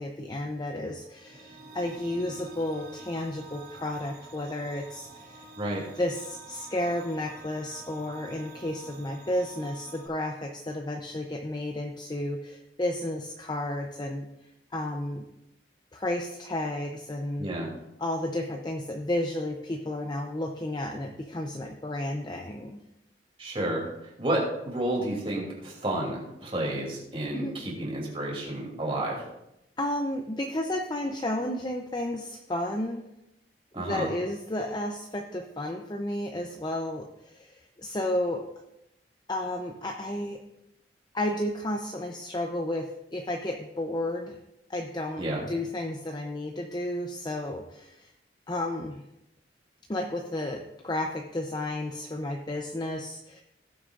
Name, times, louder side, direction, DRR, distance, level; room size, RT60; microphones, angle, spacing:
voice 1, 0.0-5.5 6.0-14.3 14.7-15.3 15.9-17.5 18.0-22.8 27.3-27.6 29.8-33.0 33.8-38.4 39.3-40.4 41.1-44.4 44.7-48.1 48.5-49.0 49.9-53.4, left 1 dB, 25° left, 2 dB, 0.6 m, -32 dB
sound 1, 1.0-10.1, right 2 dB, 55° right, 3.0 m, -48 dB
voice 2, 17.4-17.7 23.4-29.2 33.7-34.1 45.2-45.4, right 1 dB, 30° right, -2 dB, 2.9 m, -31 dB
18.0 x 7.9 x 2.5 m, 0.86 s
head